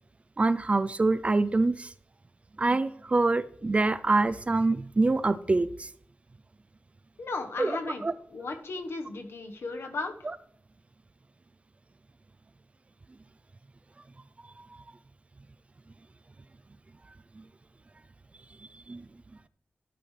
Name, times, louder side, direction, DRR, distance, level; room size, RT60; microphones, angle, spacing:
voice 1, 0.4-1.9 2.6-5.9 7.6-7.7 8.0-8.1 17.4-17.5 18.9-19.0, right 3 dB, 30° right, 13 dB, 0.4 m, -25 dB
voice 2, 7.2-8.0 8.3-10.3, left 3 dB, 75° left, 5 dB, 1.2 m, -35 dB
12.5 x 10.0 x 3.3 m, 0.65 s
wide cardioid pair, 145°, 4 cm